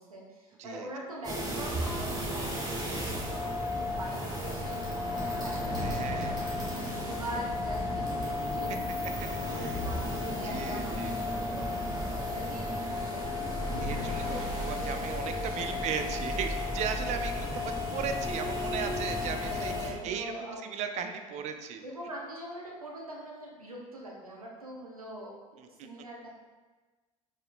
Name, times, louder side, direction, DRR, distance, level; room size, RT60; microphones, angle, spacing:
voice 1, 0.0-5.9 6.2-6.3 6.7-11.8 12.1-13.8 14.2-14.5 15.4-15.8 19.4-20.7 21.3-21.4 21.8-26.3, right 1 dB, 90° right, -2 dB, 0.6 m, -43 dB
sound 1, 1.2-19.9, left 2 dB, 20° right, 1.2 m, -33 dB
sound 2, 1.7-3.1 5.7-7.2 9.7-11.1 13.7-15.3, right 1 dB, 75° right, 1.4 m, -40 dB
voice 2, 5.8-6.4 9.4-9.8 10.4-11.1 13.8-21.8 25.6-25.9, right 7 dB, 40° right, 6 dB, 0.4 m, -37 dB
4.3 x 3.5 x 2.4 m, 1.3 s
figure-of-eight pair, 65°, 18 cm